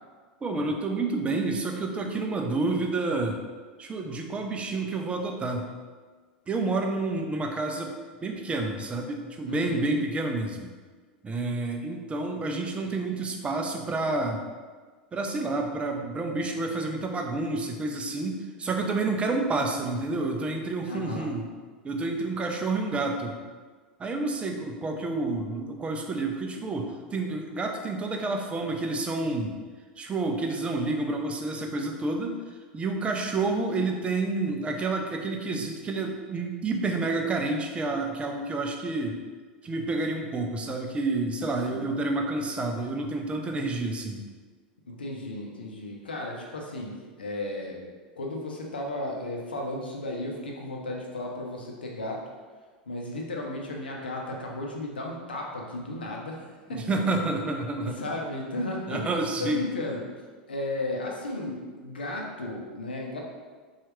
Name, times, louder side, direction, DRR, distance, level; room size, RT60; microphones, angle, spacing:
voice 1, 0.4-3.4 3.8-5.7 6.5-7.9 8.2-10.7 11.2-14.4 15.1-21.5 21.8-23.4 24.0-29.6 30.0-32.4 32.7-39.2 39.6-44.3 56.7-58.0 58.9-59.7, right 3 dB, 20° right, 3 dB, 0.4 m, -29 dB
voice 2, 9.5-9.8 20.9-21.3 41.7-41.9 44.8-47.8 48.2-52.2 52.9-56.8 57.8-59.1 59.4-60.0 60.5-63.2, left 1 dB, 90° left, 0 dB, 0.5 m, -34 dB
2.8 x 2.4 x 3.0 m, 1.5 s
hypercardioid pair, 90°, 5 cm